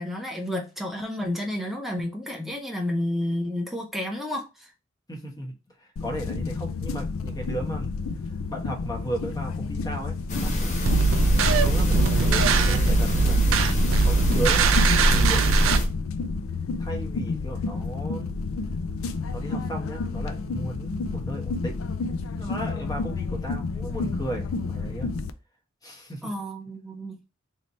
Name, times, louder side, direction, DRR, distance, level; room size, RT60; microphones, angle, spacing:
voice 1, 0.0-4.7 26.2-27.2, left 1 dB, ahead, 0.6 m, -31 dB
voice 2, 5.1-7.9 8.5-11.1 11.4-13.4 14.0-14.7 15.1-15.8 16.8-18.4 19.3-21.8 22.4-25.1 25.8-26.3, right 1 dB, 20° left, 1.1 m, -36 dB
sound 1, 6.0-25.3, left 4 dB, 85° left, 0.4 m, -30 dB
sound 2, 10.3-15.8, equal, 40° left, 0.9 m, -24 dB
sound 3, 10.8-15.8, right 5 dB, 75° right, 0.4 m, -22 dB
3.2 x 2.7 x 4.0 m
head